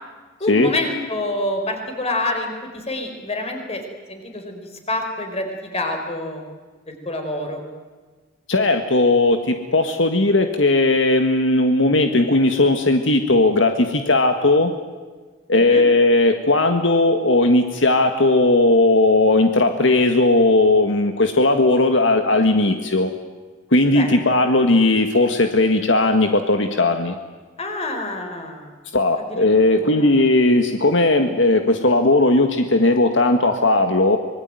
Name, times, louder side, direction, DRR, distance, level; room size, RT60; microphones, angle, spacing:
voice 1, 0.4-3.8 4.1-6.5 6.9-7.6 15.5-15.9 23.9-24.3 27.6-28.7 29.2-30.1, left 1 dB, 35° left, 4 dB, 4.7 m, -27 dB
voice 2, 8.5-14.7 15.5-23.1 23.7-27.1 28.9-34.2, left 2 dB, 75° left, 6 dB, 1.7 m, -17 dB
25.5 x 21.0 x 9.2 m, 1.4 s
head